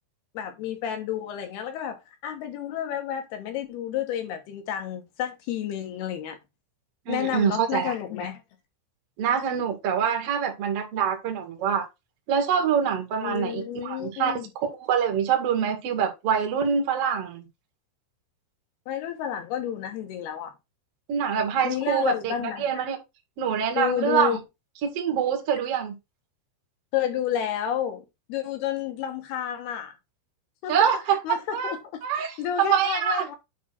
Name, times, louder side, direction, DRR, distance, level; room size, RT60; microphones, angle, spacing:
voice 1, 0.3-6.4 7.1-8.4 13.2-14.5 18.9-20.5 21.6-22.8 23.8-24.4 26.9-29.9 30.6-30.8 31.2-32.0 32.4-33.4, left 9 dB, 70° left, 2.8 m, -30 dB
voice 2, 7.1-7.9 9.2-11.8 12.3-14.3 14.8-17.5 21.1-23.0 23.4-24.4 24.8-25.9 30.7-31.2 31.5-31.8 32.0-33.2, right 8 dB, 55° right, 1.8 m, -25 dB
8.5 x 3.6 x 5.8 m
omnidirectional pair, 5.6 m